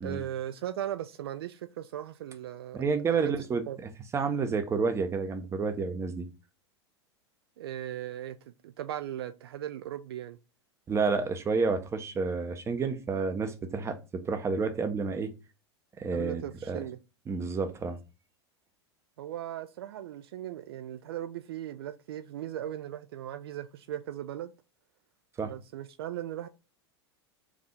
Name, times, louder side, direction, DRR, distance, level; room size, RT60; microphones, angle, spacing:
voice 1, 0.0-2.8 3.1-3.3 3.7-3.8 7.6-10.4 16.1-17.0 19.2-24.5 25.4-26.5, right 11 dB, 60° right, 0.4 m, -38 dB
voice 2, 2.7-3.6 4.1-6.3 10.9-14.0 14.2-15.3 16.0-16.4 16.7-16.8 17.3-18.0 25.4-25.5, right 4 dB, 20° right, 0.7 m, -29 dB
4.8 x 2.7 x 3.5 m
figure-of-eight pair, 90°, 14 cm